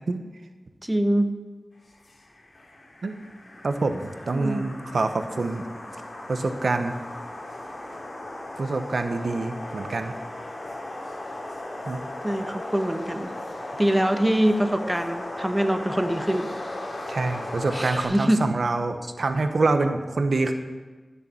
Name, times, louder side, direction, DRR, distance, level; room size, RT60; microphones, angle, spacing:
voice 1, 0.8-1.3 4.3-4.6 12.2-13.3 13.8-16.5 17.7-18.4, right 1 dB, 15° right, 6 dB, 1.2 m, -24 dB
sound 1, 1.9-18.0, left 1 dB, 75° left, 2.8 m, -37 dB
voice 2, 3.6-5.6 6.3-6.9 8.6-10.1 11.9-12.0 17.1-20.5, right 3 dB, 85° right, 7 dB, 1.1 m, -26 dB
13.5 x 6.9 x 8.7 m, 1.3 s
wide cardioid pair, 70°, 0 cm